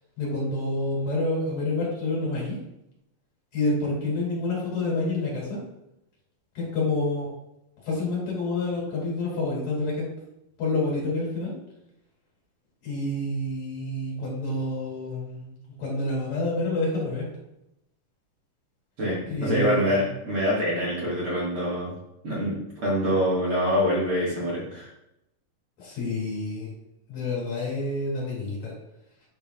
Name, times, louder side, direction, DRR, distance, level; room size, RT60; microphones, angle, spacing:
voice 1, 0.2-2.6 3.5-5.6 6.6-7.3 7.9-10.1 10.6-11.5 12.8-15.5 15.8-17.2 19.3-20.0 25.8-26.7 27.1-28.7, left 2 dB, 55° left, -4 dB, 3.4 m, -28 dB
voice 2, 19.0-21.9 22.2-22.6 22.8-24.9, equal, 50° right, -6 dB, 2.2 m, -25 dB
8.6 x 6.8 x 2.3 m, 0.85 s
omnidirectional pair, 3.8 m